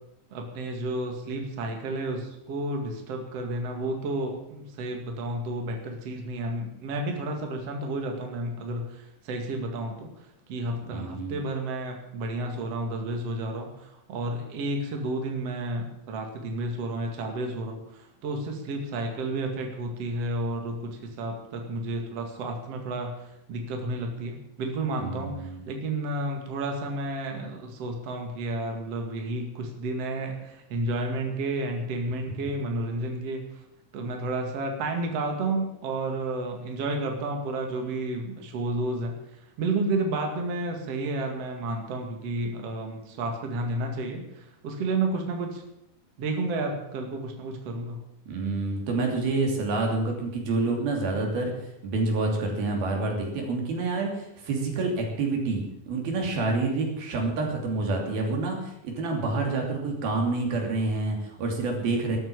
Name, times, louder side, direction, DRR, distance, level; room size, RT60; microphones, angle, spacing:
voice 1, 0.3-10.1 10.5-23.1 23.5-33.4 33.9-39.1 39.6-45.6 46.2-48.0, right 2 dB, 45° right, 3 dB, 3.0 m, -31 dB
voice 2, 10.9-11.3 25.0-25.6 48.3-62.2, right 3 dB, 90° right, 1 dB, 4.8 m, -28 dB
13.5 x 9.0 x 8.6 m, 0.83 s
omnidirectional pair, 4.1 m